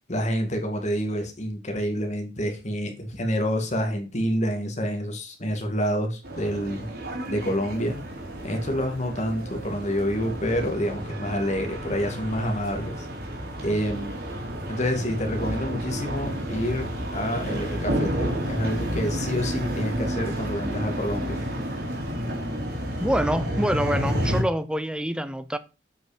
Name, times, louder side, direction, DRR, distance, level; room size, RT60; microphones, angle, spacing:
voice 1, 0.1-6.9 7.3-8.0 8.4-13.1 13.6-14.2 14.7-21.4, equal, 40° left, 2.1 m, -28 dB
sound 1, 6.2-24.4, equal, 60° right, 2.9 m, -31 dB
voice 2, 23.0-25.6, right 1 dB, 5° right, 0.5 m, -26 dB
8.0 x 5.3 x 5.1 m
head